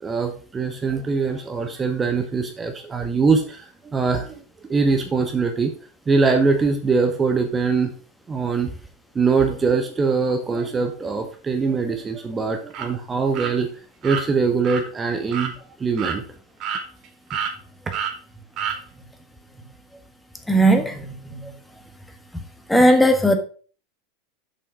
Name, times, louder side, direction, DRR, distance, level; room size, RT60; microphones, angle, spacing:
voice 1, 0.0-4.3 4.7-5.7 6.1-7.9 8.3-8.7 9.1-13.7 14.0-15.5 15.8-16.2, right 4 dB, 20° right, 5 dB, 1.0 m, -22 dB
sound 1, 12.7-12.9 13.3-13.5 14.0-14.2 14.6-14.8 15.3-15.5 16.0-16.2 16.6-17.1 17.3-17.5 17.9-18.1 18.6-18.8, right 7 dB, 45° right, 1.5 m, -28 dB
voice 2, 20.5-20.9 21.3-21.4 22.7-23.4, right 1 dB, 5° left, 6 dB, 1.5 m, -16 dB
7.2 x 5.6 x 4.8 m, 0.41 s
hypercardioid pair, 90°, 0 cm